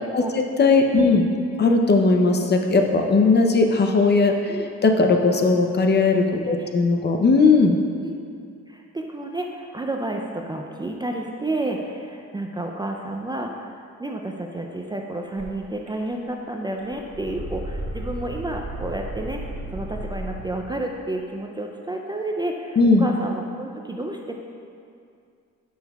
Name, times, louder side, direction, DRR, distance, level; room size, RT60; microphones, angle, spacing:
voice 1, 0.1-1.3 1.6-4.5 4.8-7.8 22.8-23.1, left 3 dB, 35° left, 4 dB, 0.6 m, -18 dB
voice 2, 6.4-6.7 8.0-8.1 8.7-19.4 19.7-24.3, right 1 dB, 15° right, 1 dB, 0.4 m, -31 dB
sound 1, 15.4-15.5 15.9-16.4 16.7-20.7, right 1 dB, 60° right, 1.6 m, -34 dB
10.0 x 6.3 x 2.3 m, 2.4 s
cardioid pair, 90°, 30 cm